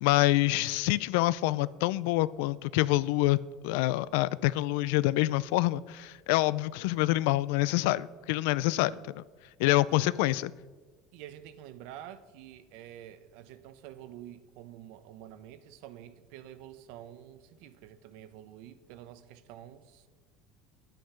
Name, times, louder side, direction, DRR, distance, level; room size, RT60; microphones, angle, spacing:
voice 1, 0.0-9.2 9.6-10.5, left 17 dB, 80° left, 0.4 m, -26 dB
voice 2, 9.9-10.3 11.1-20.1, right 11 dB, 70° right, 0.8 m, -48 dB
10.0 x 9.2 x 5.7 m
cardioid pair, 150°, 0 cm